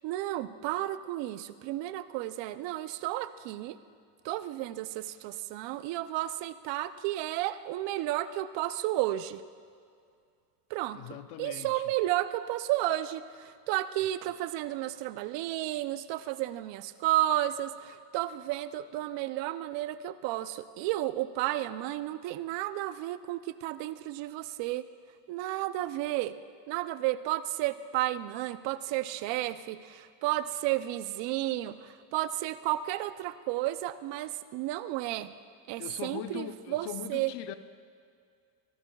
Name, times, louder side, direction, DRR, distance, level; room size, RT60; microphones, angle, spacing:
voice 1, 0.0-3.8 4.2-9.4 10.7-11.0 11.4-24.9 25.3-26.4 26.7-35.3 35.7-37.3, right 15 dB, 65° right, 13 dB, 0.7 m, -32 dB
voice 2, 10.9-11.9 35.8-37.5, left 10 dB, 55° left, 12 dB, 0.8 m, -40 dB
24.5 x 12.5 x 2.4 m, 2.2 s
supercardioid pair, 100°, 48 cm